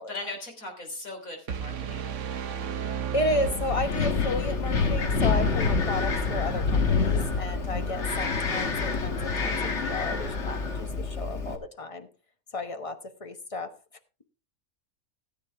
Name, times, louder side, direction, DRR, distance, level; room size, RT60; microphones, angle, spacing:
voice 1, 0.1-2.1, left 2 dB, 70° left, 3 dB, 3.9 m, -38 dB
sound 1, 1.5-4.5, right 8 dB, 60° right, 1.1 m, -34 dB
voice 2, 2.8-9.6 9.8-12.1 12.5-13.7, left 1 dB, 25° left, 8 dB, 1.1 m, -33 dB
Wind, 3.4-11.6, left 4 dB, 55° left, 1.7 m, -27 dB
16.0 x 9.1 x 3.4 m, 0.32 s
omnidirectional pair, 1.5 m